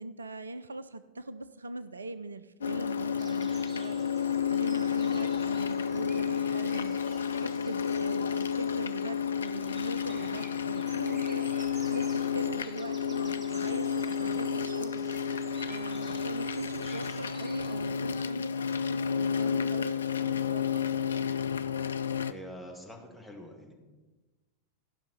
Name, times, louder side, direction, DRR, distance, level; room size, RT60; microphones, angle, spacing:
voice 1, 0.0-4.0 4.5-7.0 7.4-20.8, right 2 dB, 75° right, 13 dB, 0.4 m, -41 dB
sound 1, 2.6-22.3, left 7 dB, 70° left, 0.4 m, -31 dB
sound 2, 3.2-17.9, right 3 dB, 25° right, 1.3 m, -53 dB
voice 2, 22.3-23.7, equal, ahead, 1 dB, 2.0 m, -45 dB
14.0 x 5.7 x 5.7 m, 1.2 s
figure-of-eight pair, 90°, 0 cm